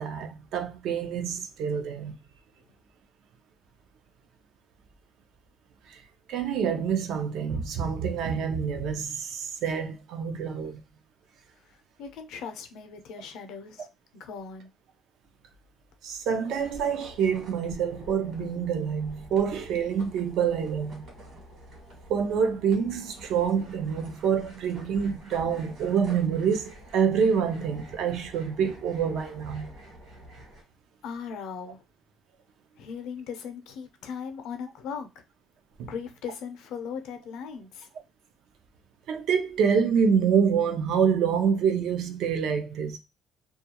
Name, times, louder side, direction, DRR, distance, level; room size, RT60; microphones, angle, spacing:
voice 1, 0.0-2.2 5.9-6.0 6.3-10.8 16.0-21.0 22.1-29.7 35.8-35.9 39.1-43.0, right 7 dB, 60° right, 0.5 m, -26 dB
voice 2, 12.0-13.9 14.1-14.7 29.7-29.8 31.0-31.8 32.8-35.2 35.9-37.9, left 6 dB, 80° left, 0.5 m, -38 dB
sound 1, 16.5-30.6, right 1 dB, 40° right, 1.2 m, -48 dB
2.3 x 2.2 x 2.8 m
cardioid pair, 170°, 0 cm